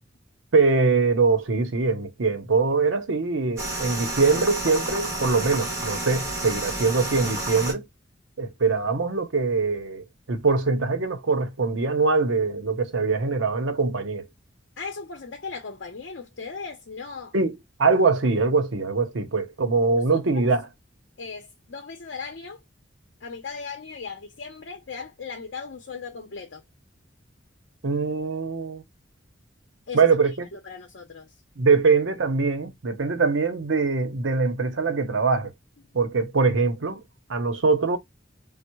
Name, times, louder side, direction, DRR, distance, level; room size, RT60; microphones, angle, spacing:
voice 1, 0.5-7.8 8.4-14.3 17.3-20.6 27.8-28.8 29.9-30.5 31.6-35.5 35.9-37.0 37.3-38.0, right 4 dB, 80° right, 0.7 m, -23 dB
sound 1, 3.6-7.7, right 2 dB, 15° right, 1.4 m, -30 dB
voice 2, 14.8-17.3 20.1-20.5 21.2-22.6 23.2-26.6 29.9-30.1 30.5-31.3, left 5 dB, 65° left, 0.6 m, -37 dB
3.4 x 2.0 x 3.0 m
head